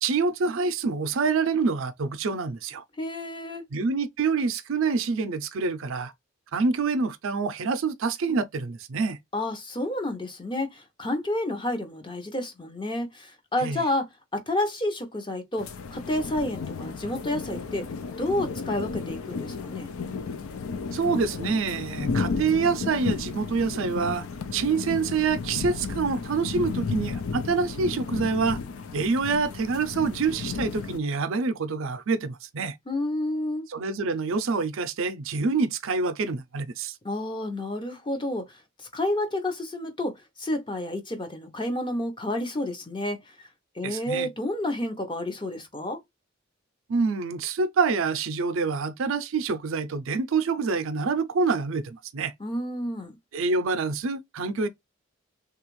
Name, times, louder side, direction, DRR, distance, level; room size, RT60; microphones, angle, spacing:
voice 1, 0.0-2.8 3.7-6.1 6.5-9.2 13.6-13.8 20.9-24.3 24.5-28.6 28.9-32.8 33.7-37.0 43.8-44.3 46.9-52.3 53.3-54.7, right 4 dB, 70° right, 0.5 m, -26 dB
voice 2, 3.0-3.6 9.3-14.1 14.3-17.9 18.2-19.9 32.9-33.7 37.0-43.5 43.7-46.0 52.4-53.2, left 1 dB, 25° left, 0.7 m, -30 dB
sound 1, 15.6-31.0, left 4 dB, 85° left, 0.5 m, -33 dB
3.3 x 2.4 x 3.0 m
head